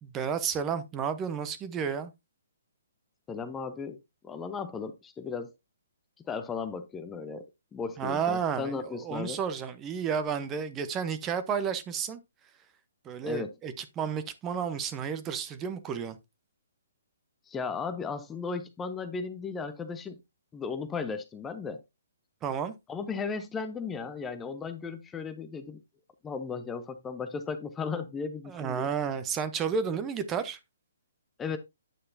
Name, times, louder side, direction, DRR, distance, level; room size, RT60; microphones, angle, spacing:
voice 1, 0.0-2.1 8.0-12.2 13.0-16.2 22.4-22.7 28.5-30.6, right 7 dB, 20° right, 0.8 m, -32 dB
voice 2, 3.3-4.0 4.2-5.5 6.2-9.4 13.2-13.5 17.5-20.2 20.5-21.8 22.9-25.8 26.2-28.9 31.4-31.6, left 5 dB, 15° left, 0.7 m, -36 dB
9.1 x 6.6 x 2.7 m
hypercardioid pair, 135°, 0 cm